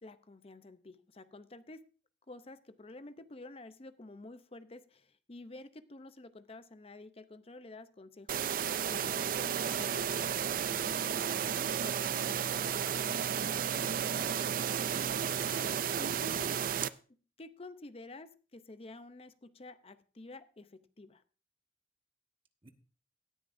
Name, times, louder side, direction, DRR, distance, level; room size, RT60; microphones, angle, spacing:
voice 1, 0.0-1.8 2.3-12.5 13.0-13.2 16.0-16.6 17.4-21.2, left 2 dB, 35° left, 12 dB, 0.7 m, -50 dB
sound 1, 8.3-16.9, right 8 dB, 50° right, 0.4 m, -33 dB
voice 2, 13.0-14.1 14.4-15.0 22.6-22.7, right 1 dB, 30° right, 6 dB, 1.2 m, -55 dB
17.5 x 9.6 x 2.6 m, 0.36 s
head